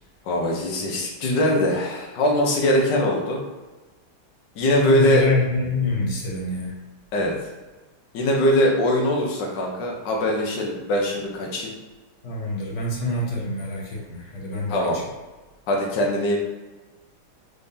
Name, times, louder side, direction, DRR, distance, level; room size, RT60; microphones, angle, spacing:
voice 1, 0.2-3.4 4.6-5.2 7.1-7.3 8.1-11.7 14.7-15.0 15.7-16.4, left 1 dB, 65° left, -1 dB, 1.5 m, -22 dB
voice 2, 4.8-6.7 12.2-15.0, left 2 dB, 45° left, -3 dB, 1.1 m, -26 dB
4.7 x 3.4 x 2.7 m, 1.2 s
omnidirectional pair, 2.1 m